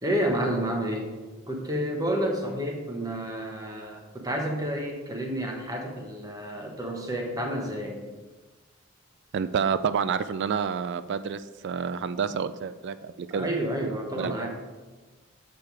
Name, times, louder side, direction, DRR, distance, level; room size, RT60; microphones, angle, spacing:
voice 1, 0.0-1.1 1.5-8.0 13.3-14.6, right 1 dB, 15° right, 2 dB, 1.2 m, -30 dB
voice 2, 9.3-13.5 14.2-14.5, right 6 dB, 55° right, 13 dB, 0.3 m, -29 dB
7.2 x 6.7 x 4.6 m, 1.3 s
head